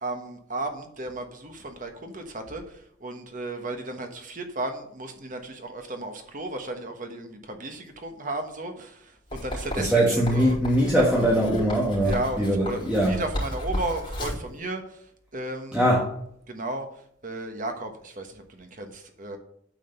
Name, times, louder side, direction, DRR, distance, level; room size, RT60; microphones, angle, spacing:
voice 1, 0.0-2.6 3.0-10.6 12.0-14.8 15.3-15.8 16.5-16.9 17.2-19.4, right 2 dB, 40° right, 5 dB, 1.3 m, -34 dB
Writing, 9.3-14.5, equal, 25° left, 4.2 m, -34 dB
voice 2, 9.7-13.2 15.7-16.1, equal, 5° right, -5 dB, 1.7 m, -22 dB
9.1 x 5.2 x 6.7 m, 0.70 s
head